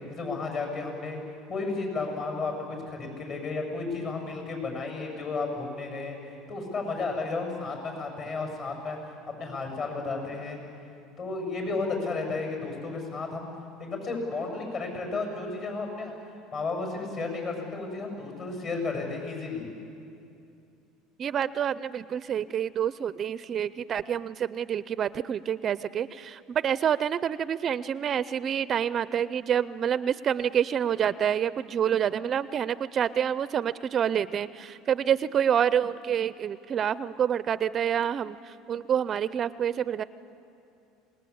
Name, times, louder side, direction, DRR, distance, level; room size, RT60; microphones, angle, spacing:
voice 1, 0.1-1.2 1.5-6.2 6.5-9.0 9.3-10.6 11.2-13.5 13.8-16.1 16.5-19.7, left 3 dB, 45° left, 2 dB, 7.5 m, -33 dB
voice 2, 21.2-40.0, right 9 dB, 35° right, 16 dB, 0.5 m, -27 dB
27.5 x 19.5 x 8.6 m, 2.6 s
supercardioid pair, 120°, 0 cm